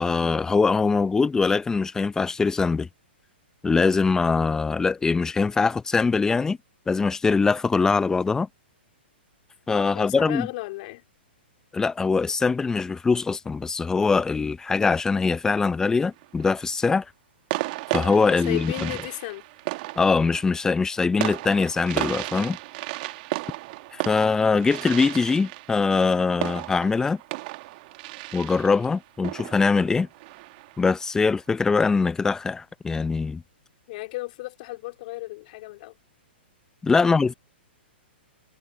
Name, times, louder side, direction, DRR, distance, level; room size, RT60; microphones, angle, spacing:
voice 1, 0.0-2.9 3.6-6.6 6.9-8.5 9.7-10.5 11.7-17.0 17.9-18.9 20.0-22.6 23.9-27.2 28.3-30.1 30.8-33.4 36.8-37.3, left 4 dB, 10° left, 0.7 m, -22 dB
voice 2, 9.9-11.0 18.3-19.4 33.9-35.9 37.0-37.1, left 21 dB, 50° left, 2.8 m, -34 dB
sound 1, 16.0-16.6 17.5-30.9, right 22 dB, 45° right, 1.6 m, -34 dB
hypercardioid pair, 130°, 6 cm